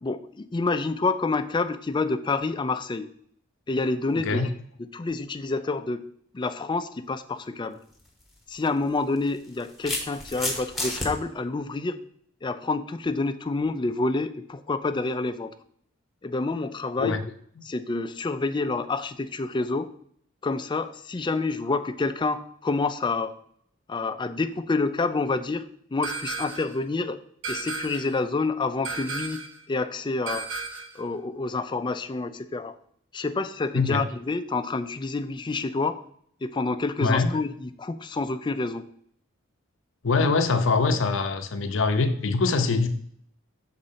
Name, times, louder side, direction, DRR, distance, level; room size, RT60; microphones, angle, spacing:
voice 1, 0.0-3.1 3.7-4.4 4.8-6.1 6.3-7.8 8.5-12.0 12.4-15.5 16.2-17.2 17.6-19.9 20.4-23.3 23.9-25.7 25.9-27.2 27.5-30.5 30.9-32.7 33.1-36.0 36.4-38.8, left 3 dB, 25° left, 10 dB, 0.4 m, -28 dB
voice 2, 4.1-4.5 17.0-17.2 33.7-34.0 37.0-37.3 40.0-42.9, left 4 dB, 65° left, 7 dB, 0.6 m, -23 dB
sound 1, 7.9-8.1 9.2-11.1, left 1 dB, ahead, 1.2 m, -30 dB
sound 2, 26.0-26.8 27.4-28.2 28.8-29.6 30.3-31.0, right 4 dB, 65° right, 0.9 m, -34 dB
6.3 x 3.9 x 5.6 m, 0.64 s
head